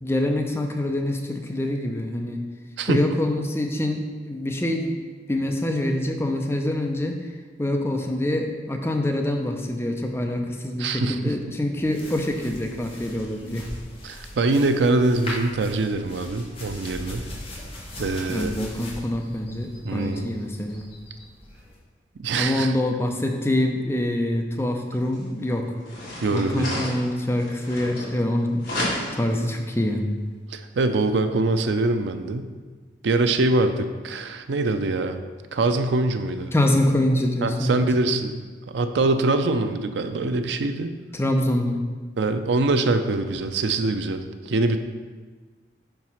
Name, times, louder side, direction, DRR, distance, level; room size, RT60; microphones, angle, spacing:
voice 1, 0.0-2.4 2.9-4.0 4.3-7.2 7.6-13.7 18.3-20.9 22.4-25.7 26.3-28.6 29.1-30.1 36.5-37.8 41.1-41.8, left 1 dB, 15° left, 2 dB, 0.5 m, -25 dB
voice 2, 2.8-3.1 10.8-11.6 14.0-17.2 18.0-18.5 19.8-20.4 22.2-22.7 26.2-26.8 30.5-32.5 33.0-35.2 35.5-36.5 37.4-40.9 42.2-44.8, right 2 dB, 85° right, 8 dB, 0.5 m, -24 dB
sound 1, 11.8-21.8, left 1 dB, 35° left, 1.4 m, -40 dB
sound 2, 25.1-25.2 25.8-28.3 28.6-29.4, left 1 dB, 55° left, 1.9 m, -32 dB
4.8 x 4.6 x 5.5 m, 1.4 s
head